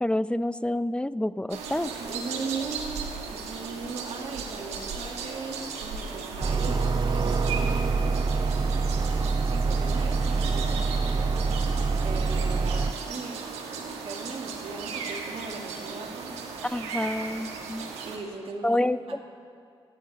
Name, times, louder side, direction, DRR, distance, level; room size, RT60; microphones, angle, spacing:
voice 1, 0.0-1.9 16.6-17.9 18.6-19.2, left 1 dB, 10° left, 16 dB, 0.6 m, -28 dB
sound 1, 1.5-18.2, right 5 dB, 90° right, 1.4 m, -37 dB
voice 2, 2.0-2.9 3.3-7.7 9.4-13.5 13.7-16.4 18.0-19.2, right 4 dB, 65° right, 0 dB, 2.1 m, -38 dB
sound 2, 6.4-12.9, right 4 dB, 45° right, 0.7 m, -25 dB
30.0 x 10.0 x 4.2 m, 2.3 s
supercardioid pair, 45°, 11 cm